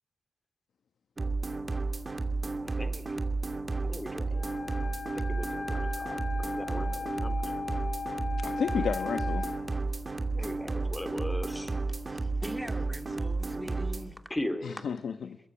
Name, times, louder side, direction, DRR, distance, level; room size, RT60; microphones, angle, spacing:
sound 1, 1.2-14.1, right 3 dB, 35° right, 2.6 m, -32 dB
voice 1, 3.8-4.4 5.1-7.5 10.3-11.7 14.3-14.8, left 1 dB, 15° left, 9 dB, 3.6 m, -38 dB
Wind instrument woodwind instrument, 4.3-9.6, left 5 dB, 30° left, 2.7 m, -38 dB
voice 2, 8.4-9.6 14.6-15.4, left 7 dB, 80° left, 9 dB, 1.0 m, -33 dB
voice 3, 12.0-14.3, right 1 dB, 5° right, 7 dB, 2.6 m, -43 dB
23.0 x 21.5 x 8.7 m, 0.76 s
cardioid pair, 75°, 0 cm